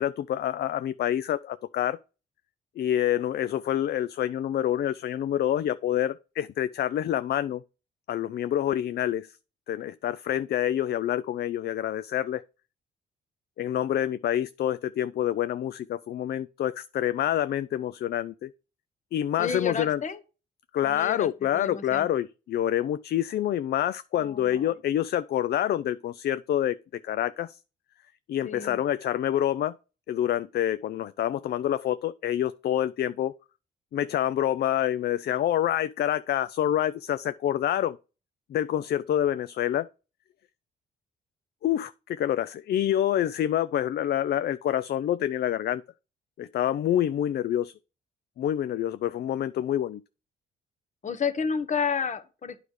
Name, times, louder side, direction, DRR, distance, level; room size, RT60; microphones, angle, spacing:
voice 1, 0.0-2.0 2.8-7.6 8.1-9.3 9.7-12.4 13.6-18.5 19.1-20.0 20.7-27.6 28.3-29.7 30.1-33.3 33.9-38.0 38.5-39.9 41.6-45.8 46.4-47.7 48.4-50.0, left 11 dB, 55° left, 0.4 m, -27 dB
voice 2, 19.4-20.2 20.8-22.1 24.1-24.8 28.4-28.8 51.0-52.6, left 6 dB, 40° left, 1.1 m, -31 dB
9.4 x 5.0 x 4.8 m
cardioid pair, 90°, 20 cm